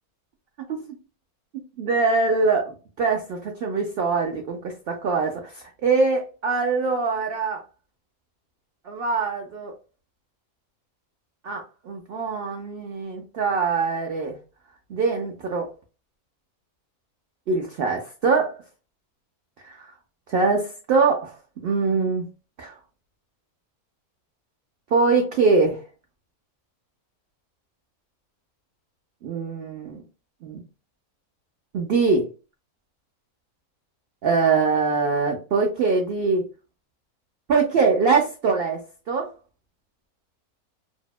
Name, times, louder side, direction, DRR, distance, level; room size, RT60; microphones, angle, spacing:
voice 1, 1.8-7.6 8.8-9.7 11.4-14.4 14.9-15.7 17.5-18.6 19.6-19.9 20.3-22.3 22.6-22.7 24.9-25.8 29.2-30.0 30.4-30.6 31.7-32.3 34.2-36.4 37.5-39.3, right 4 dB, 80° right, 1 dB, 0.5 m, -23 dB
2.7 x 2.1 x 2.3 m, 0.34 s
omnidirectional pair, 1.6 m